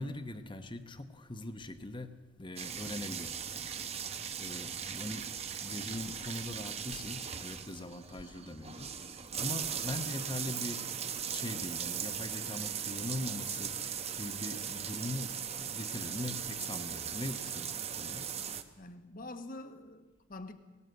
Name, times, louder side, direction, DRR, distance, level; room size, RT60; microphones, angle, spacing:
voice 1, 0.0-2.1 2.4-3.5 4.4-5.3 5.6-11.0 11.3-15.3 15.6-18.3, left 1 dB, 25° left, 1.0 m, -41 dB
sound 1, 2.6-18.6, right 8 dB, 30° right, 0.9 m, -39 dB
voice 2, 18.8-20.5, left 2 dB, 40° left, 1.3 m, -46 dB
18.5 x 18.0 x 7.9 m
head